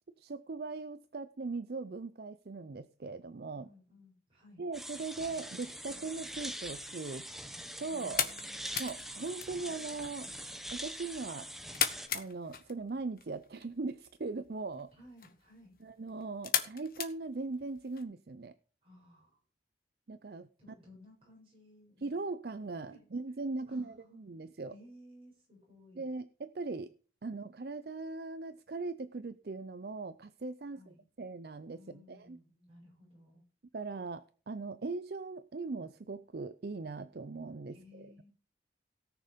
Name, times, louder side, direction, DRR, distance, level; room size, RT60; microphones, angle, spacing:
voice 1, 0.2-3.7 4.6-7.3 7.8-8.3 8.8-10.3 10.7-11.5 12.1-14.9 15.8-18.5 20.1-20.5 22.0-24.7 26.0-26.9 27.2-30.8 31.2-31.8 32.1-32.4 33.7-38.1, right 3 dB, 60° right, 12 dB, 0.5 m, -39 dB
voice 2, 3.5-4.6 7.9-9.4 14.9-15.8 18.8-19.4 20.6-22.2 22.8-23.0 23.7-24.3 24.7-26.1 30.7-31.0 31.8-33.4 37.7-38.3, left 1 dB, 30° right, -3 dB, 7.4 m, -58 dB
sound 1, 4.7-12.1, equal, ahead, 0.8 m, -43 dB
sound 2, 6.6-18.0, left 8 dB, 55° left, 1.3 m, -40 dB
17.5 x 6.6 x 5.1 m, 0.40 s
head